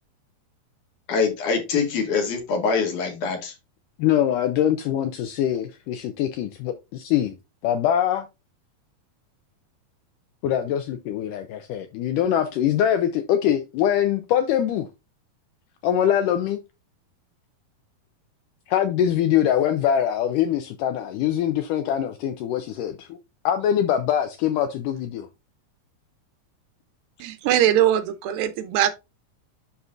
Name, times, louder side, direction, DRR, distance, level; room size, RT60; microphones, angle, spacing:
voice 1, 1.1-3.5, left 5 dB, 60° left, 2.8 m, -24 dB
voice 2, 4.0-7.3 7.6-8.3 10.4-14.9 15.8-16.6 18.7-23.2 23.5-25.3, left 10 dB, 80° left, 1.9 m, -23 dB
voice 3, 27.2-28.9, right 12 dB, 80° right, 2.3 m, -21 dB
11.5 x 4.1 x 2.4 m
omnidirectional pair, 4.3 m